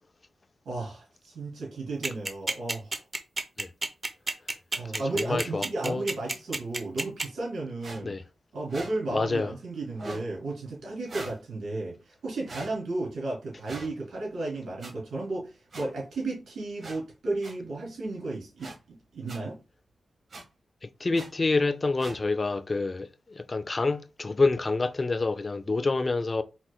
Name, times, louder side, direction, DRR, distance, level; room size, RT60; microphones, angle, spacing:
voice 1, 0.6-3.0 4.7-8.2 8.5-18.7 19.1-19.6, right 2 dB, 85° right, 2.7 m, -34 dB
sound 1, 2.0-7.2, right 2 dB, 35° right, 0.8 m, -29 dB
voice 2, 5.2-6.0 8.0-8.2 9.1-9.5 21.0-23.1 23.4-26.4, left 3 dB, 40° left, 0.5 m, -27 dB
sound 2, 7.8-8.0 8.7-8.9 9.9-10.3 11.1-11.4 12.4-12.7 13.6-13.9 14.8-14.9 15.7-15.8 16.8-17.0 17.4-17.5 18.6-18.7 19.3-19.4 20.3-20.4 21.1-21.3 22.0-22.2, right 2 dB, 60° right, 1.5 m, -40 dB
4.6 x 4.0 x 2.3 m
cardioid pair, 50°, 0 cm